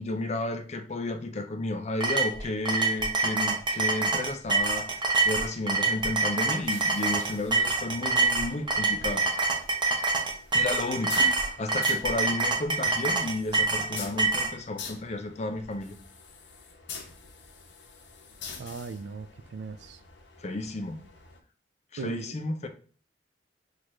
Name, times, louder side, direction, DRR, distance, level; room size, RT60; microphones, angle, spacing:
voice 1, 0.0-9.2 10.5-15.9 20.4-21.0 21.9-22.7, left 2 dB, 35° left, 0.5 m, -32 dB
sound 1, 2.0-14.5, right 3 dB, 25° right, 0.7 m, -26 dB
sound 2, 6.5-21.4, left 5 dB, 70° left, 0.8 m, -45 dB
voice 2, 18.6-20.0 22.0-22.3, right 4 dB, 65° right, 0.3 m, -38 dB
6.1 x 2.5 x 3.1 m
head